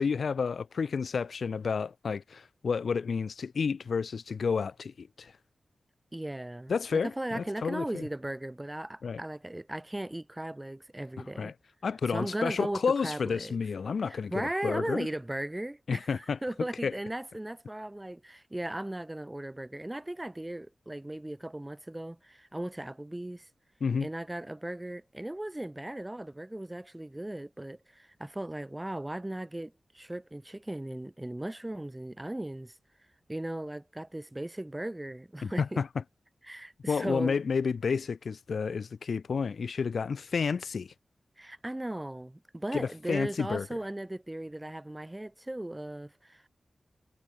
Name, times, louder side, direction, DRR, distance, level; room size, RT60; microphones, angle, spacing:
voice 1, 0.0-5.3 6.7-8.0 9.0-9.2 11.4-11.5 11.8-15.1 15.9-16.4 16.8-16.9 23.8-24.1 35.4-35.9 36.9-40.9 42.7-43.7, left 5 dB, 75° left, 0.4 m, -30 dB
voice 2, 6.1-11.5 12.1-13.6 14.1-23.5 24.0-32.7 33.3-35.8 36.4-37.4 41.4-46.5, right 1 dB, 15° right, 0.9 m, -37 dB
wide cardioid pair, 110°, 0 cm